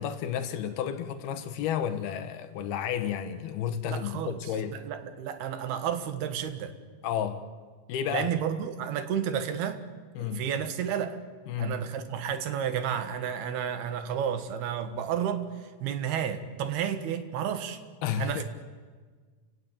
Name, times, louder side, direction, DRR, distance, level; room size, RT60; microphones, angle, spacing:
voice 1, 0.0-4.8 7.0-7.5 7.9-8.3 10.2-10.5 11.5-11.8 18.0-18.4, left 9 dB, 90° left, 3.3 m, -31 dB
voice 2, 3.8-4.4 4.7-6.8 8.1-9.8 10.2-11.2 11.6-15.5 15.8-17.8 18.2-18.4, right 8 dB, 85° right, 3.5 m, -31 dB
30.0 x 17.0 x 8.8 m
omnidirectional pair, 4.4 m